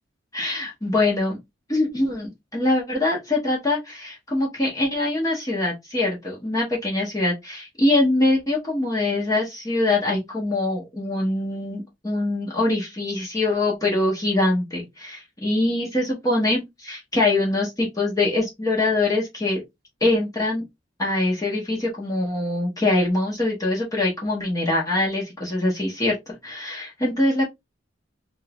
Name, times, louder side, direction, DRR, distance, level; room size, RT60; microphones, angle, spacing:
voice 1, 0.3-1.4 1.7-19.6 20.0-20.6 21.0-26.2 26.4-27.4, left 2 dB, 20° left, 1.2 m, -23 dB
3.6 x 2.5 x 3.4 m
head